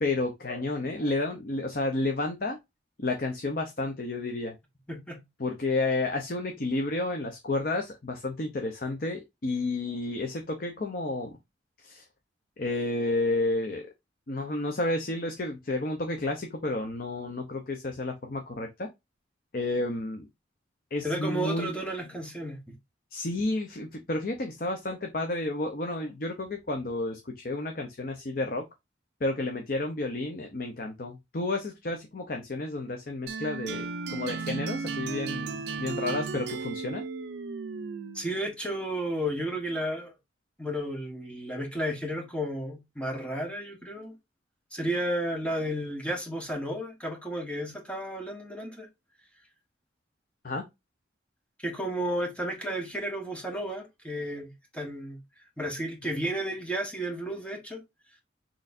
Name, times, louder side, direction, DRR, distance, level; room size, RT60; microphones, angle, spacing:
voice 1, 0.0-2.6 3.0-4.5 5.4-11.4 11.8-12.0 12.6-13.9 14.3-18.9 19.5-20.3 20.9-21.8 23.1-28.6 29.2-37.0 50.4-50.6, left 2 dB, 50° left, 0.7 m, -31 dB
voice 2, 4.9-5.2 21.0-22.6 38.1-40.1 40.6-44.1 44.7-48.9 51.6-55.2 55.6-57.8, right 1 dB, 5° left, 1.1 m, -32 dB
sound 1, 33.3-38.4, right 5 dB, 65° right, 0.4 m, -35 dB
6.3 x 3.1 x 2.5 m
head